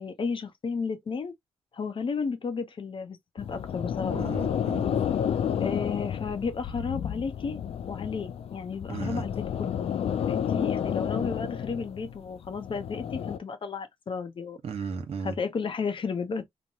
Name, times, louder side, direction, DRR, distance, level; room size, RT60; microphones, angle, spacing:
voice 1, 0.0-1.3 1.7-4.3 5.6-7.6 7.9-9.9 10.3-14.6 15.2-16.5, left 5 dB, 55° left, 0.7 m, -33 dB
sound 1, 3.4-13.4, left 8 dB, 70° left, 0.4 m, -31 dB
voice 2, 4.1-4.9 8.9-9.3 14.6-15.4, right 5 dB, 70° right, 0.9 m, -35 dB
3.0 x 2.1 x 2.7 m
supercardioid pair, 50°, 11 cm